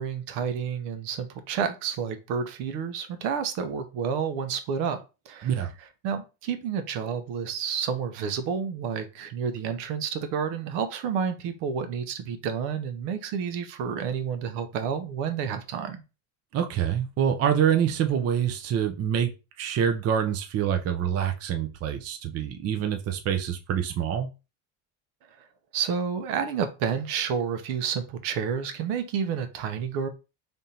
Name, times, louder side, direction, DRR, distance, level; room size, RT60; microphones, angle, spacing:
voice 1, 0.0-5.0 5.3-5.7 6.0-16.0 25.4-25.5 25.7-30.1, right 7 dB, 70° right, 8 dB, 0.9 m, -30 dB
voice 2, 16.5-19.3 19.6-24.3, right 8 dB, 35° right, 5 dB, 0.6 m, -26 dB
3.5 x 2.6 x 4.2 m, 0.29 s
supercardioid pair, 120°, 44 cm